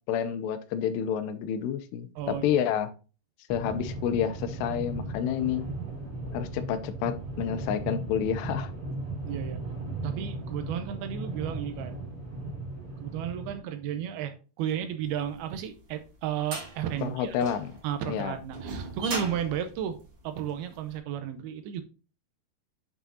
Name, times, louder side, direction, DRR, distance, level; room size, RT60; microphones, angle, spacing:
voice 1, 0.1-2.9 3.5-5.6 6.3-8.7 17.0-17.7 18.1-18.4, left 9 dB, 80° left, 10 dB, 2.7 m, -29 dB
voice 2, 2.2-2.6 9.3-9.6 10.0-12.0 13.0-17.5 17.8-20.0 20.2-21.8, right 9 dB, 80° right, 9 dB, 2.4 m, -33 dB
sound 1, 3.5-13.6, right 2 dB, 10° right, 2.0 m, -36 dB
sound 2, 15.4-20.8, right 3 dB, 40° right, 2.3 m, -39 dB
8.1 x 5.9 x 2.7 m, 0.34 s
omnidirectional pair, 5.0 m